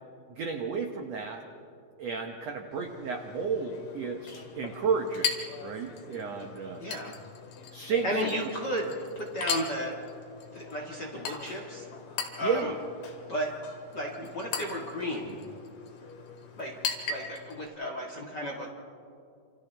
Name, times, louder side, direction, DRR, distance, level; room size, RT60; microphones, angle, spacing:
voice 1, 0.4-1.4 2.0-5.3 5.6-6.8 7.7-8.3 12.4-12.7, right 5 dB, 75° right, 4 dB, 1.5 m, -32 dB
Chink clink, 2.7-17.7, left 6 dB, 80° left, 4.0 m, -39 dB
voice 2, 6.8-7.1 8.0-10.0 10.5-11.9 12.4-12.7 13.3-13.6 13.9-15.4 16.6-16.8 17.1-18.8, equal, 40° left, -1 dB, 1.6 m, -33 dB
29.0 x 27.5 x 3.4 m, 2.4 s
omnidirectional pair, 4.5 m